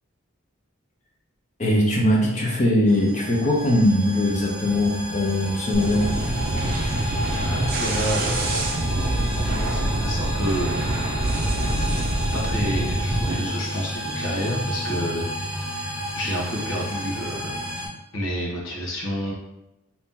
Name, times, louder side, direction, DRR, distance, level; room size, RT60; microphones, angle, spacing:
voice 1, 1.6-6.1, left 1 dB, 35° left, -2 dB, 0.7 m, -21 dB
sound 1, 2.9-17.9, equal, 5° right, 1.0 m, -32 dB
sound 2, 5.7-13.4, right 1 dB, 45° right, 0.5 m, -25 dB
voice 2, 7.4-8.7 9.1-11.1 12.3-15.2 15.7-15.8 16.1-17.5 18.1-19.3, equal, 80° left, -3 dB, 1.1 m, -29 dB
2.8 x 2.8 x 3.6 m, 0.93 s
head